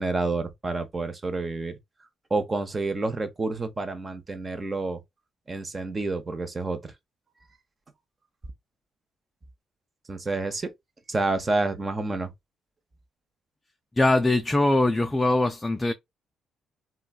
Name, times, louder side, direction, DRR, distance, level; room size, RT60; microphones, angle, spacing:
voice 1, 0.0-1.8 2.3-5.0 5.5-6.9 10.1-10.7 11.1-12.3, right 3 dB, 30° right, 0.7 m, -29 dB
voice 2, 14.0-15.9, left 2 dB, 15° left, 0.4 m, -22 dB
3.0 x 2.3 x 2.3 m
cardioid pair, 90°, 0 cm